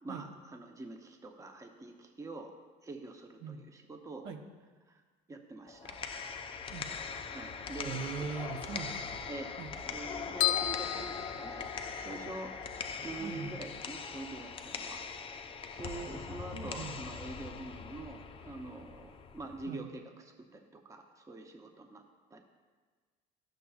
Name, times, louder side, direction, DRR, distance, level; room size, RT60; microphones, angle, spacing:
voice 1, 0.0-2.5 2.8-4.3 4.9-5.0 5.3-6.0 7.3-8.3 9.3-9.5 9.8-12.5 13.0-15.0 15.8-22.0 22.3-22.4, right 2 dB, 15° right, 4 dB, 0.7 m, -45 dB
sound 1, 5.7-19.7, left 5 dB, 25° left, 0.5 m, -41 dB
voice 2, 7.8-9.2 9.6-9.7 13.2-13.6 16.5-17.0 19.6-19.9, right 5 dB, 70° right, 4 dB, 0.8 m, -41 dB
sound 2, 10.4-12.2, left 13 dB, 90° left, 0.5 m, -33 dB
12.0 x 6.6 x 2.4 m, 1.4 s
cardioid pair, 110°, 20 cm